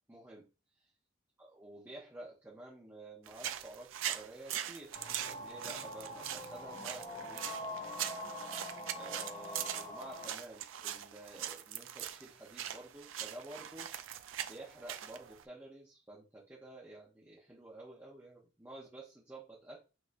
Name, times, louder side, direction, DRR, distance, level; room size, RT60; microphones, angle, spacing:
voice 1, 0.1-0.5 0.8-0.9 1.4-7.5 8.9-13.9 14.5-19.8, right 1 dB, 10° right, -4 dB, 0.8 m, -51 dB
sound 1, 3.3-15.4, right 10 dB, 85° right, 0.4 m, -42 dB
sound 2, 4.9-10.3, left 1 dB, 40° left, 1.7 m, -44 dB
6.2 x 2.8 x 2.6 m, 0.32 s
head